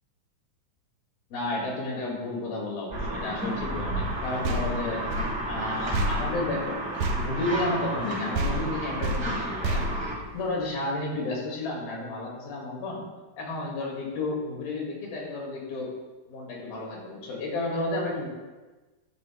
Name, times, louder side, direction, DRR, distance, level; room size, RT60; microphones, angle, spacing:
voice 1, 1.3-5.0 5.5-6.8 7.1-9.8 10.3-13.1 13.4-15.9 16.3-18.3, left 2 dB, 85° left, -2 dB, 3.8 m, -32 dB
sound 1, 2.9-10.2, right 1 dB, 25° right, 2.6 m, -32 dB
sound 2, 4.4-8.1 8.3-10.8, right 1 dB, 70° right, 1.9 m, -31 dB
12.5 x 10.5 x 2.2 m, 1.2 s
omnidirectional pair, 4.2 m